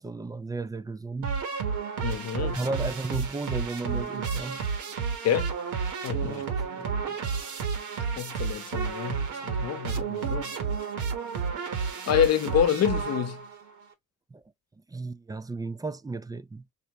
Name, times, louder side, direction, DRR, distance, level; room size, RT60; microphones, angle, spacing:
voice 1, 0.0-1.4 2.4-4.6 6.2-6.4 6.7-7.2 14.3-14.4 14.9-16.7, right 3 dB, 15° right, 0.3 m, -34 dB
sound 1, 1.2-13.6, right 6 dB, 80° right, 1.2 m, -31 dB
voice 2, 2.0-2.6 5.2-5.5 6.0-6.4 8.2-10.5 12.1-13.4, left 9 dB, 55° left, 0.8 m, -27 dB
5.5 x 2.1 x 2.9 m
cardioid pair, 90°, 30 cm